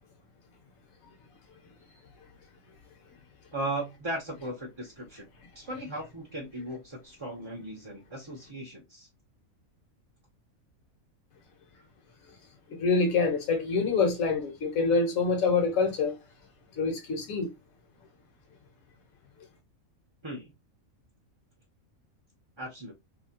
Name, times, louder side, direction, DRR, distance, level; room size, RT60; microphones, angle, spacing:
voice 1, 3.5-5.3 5.5-9.1 20.2-20.5 22.6-22.9, right 1 dB, 35° right, 0.5 m, -37 dB
voice 2, 12.7-16.2 16.8-17.5, left 4 dB, 75° left, 1.2 m, -26 dB
2.8 x 2.7 x 2.7 m
omnidirectional pair, 1.5 m